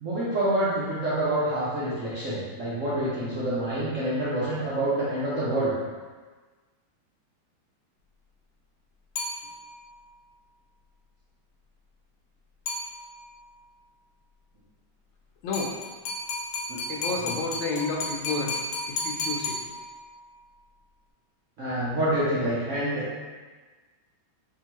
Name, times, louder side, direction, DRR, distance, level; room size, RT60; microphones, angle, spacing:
voice 1, 0.0-5.7 16.7-16.8 17.2-17.3 21.6-23.2, right 1 dB, 80° right, -9 dB, 0.6 m, -27 dB
sound 1, 9.2-9.9 12.7-13.4 15.5-20.2, left 2 dB, 65° left, 1.2 m, -33 dB
voice 2, 16.9-18.6 18.9-19.5, left 4 dB, 80° left, -1 dB, 1.4 m, -30 dB
3.6 x 3.0 x 2.9 m, 1.4 s
omnidirectional pair, 2.2 m